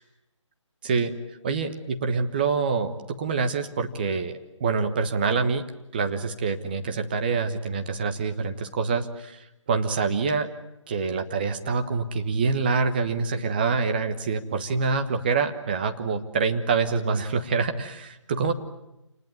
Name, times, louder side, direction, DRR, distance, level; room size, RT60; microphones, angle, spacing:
voice 1, 0.8-1.1 1.4-5.6 5.9-10.5 10.9-18.5, right 4 dB, 20° right, 6 dB, 1.3 m, -26 dB
28.5 x 19.5 x 9.3 m, 0.92 s
figure-of-eight pair, 155°, 16 cm